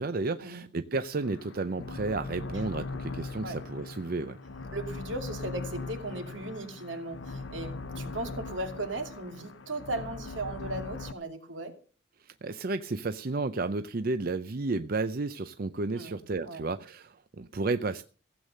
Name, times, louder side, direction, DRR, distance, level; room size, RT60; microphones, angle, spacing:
voice 1, 0.0-4.4 12.2-18.0, right 3 dB, 50° right, 0.6 m, -32 dB
sound 1, 1.1-11.1, left 3 dB, 80° left, 0.8 m, -40 dB
voice 2, 4.7-11.7 15.9-16.6, right 2 dB, 85° right, 2.7 m, -37 dB
16.0 x 8.2 x 6.6 m
head